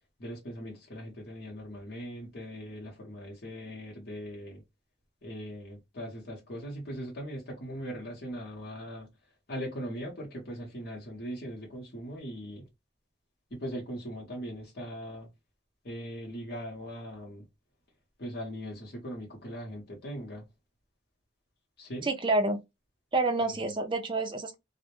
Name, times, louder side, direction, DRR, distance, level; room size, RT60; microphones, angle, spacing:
voice 1, 0.2-4.6 5.2-9.1 9.5-12.7 13.5-15.3 15.8-17.4 18.2-20.5 21.8-22.1 23.5-23.6, equal, 55° left, 0.8 m, -40 dB
voice 2, 22.0-22.6 23.1-24.5, right 2 dB, 25° right, 0.4 m, -28 dB
2.1 x 2.0 x 2.9 m
head